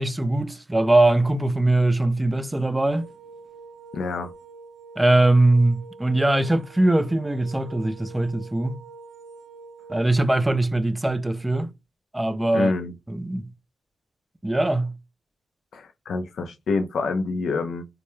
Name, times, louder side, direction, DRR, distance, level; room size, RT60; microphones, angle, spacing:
voice 1, 0.0-3.1 5.0-8.8 9.9-11.7 12.1-12.7 13.1-13.5 14.4-14.9, right 2 dB, 15° right, 0.4 m, -21 dB
sound 1, 2.9-10.0, right 4 dB, 85° right, 0.4 m, -45 dB
voice 2, 3.9-4.3 12.5-12.9 15.7-17.9, left 4 dB, 80° left, 0.5 m, -27 dB
2.2 x 2.1 x 3.0 m
cardioid pair, 55°, 0 cm